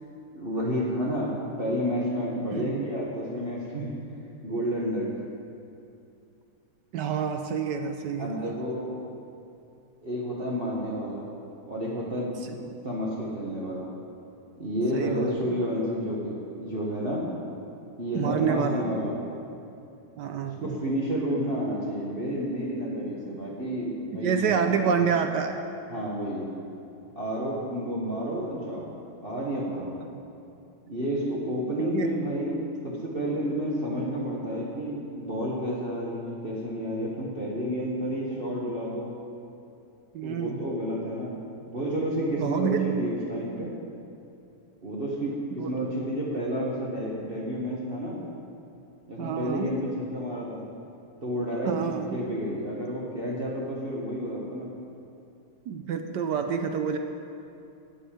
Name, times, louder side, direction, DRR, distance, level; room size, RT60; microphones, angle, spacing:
voice 1, 0.3-4.0 4.4-5.1 8.2-8.9 10.0-11.3 11.7-12.3 12.8-13.9 14.6-17.3 18.0-19.2 20.4-24.9 25.9-26.5 27.1-28.9 29.2-29.9 30.9-32.6 32.8-39.1 40.2-41.3 41.7-43.8 44.8-48.2 49.1-50.6 51.2-51.7 52.1-54.7, equal, 30° right, -5 dB, 1.3 m, -30 dB
voice 2, 2.5-2.8 6.9-8.5 12.4-12.5 14.9-15.3 18.1-18.9 20.2-20.8 24.2-25.6 30.1-30.2 31.8-32.1 40.1-40.6 42.4-42.9 45.6-45.7 49.2-49.7 51.7-52.2 55.7-57.0, right 7 dB, 70° right, 6 dB, 1.1 m, -28 dB
13.5 x 5.6 x 8.7 m, 2.7 s
omnidirectional pair, 2.3 m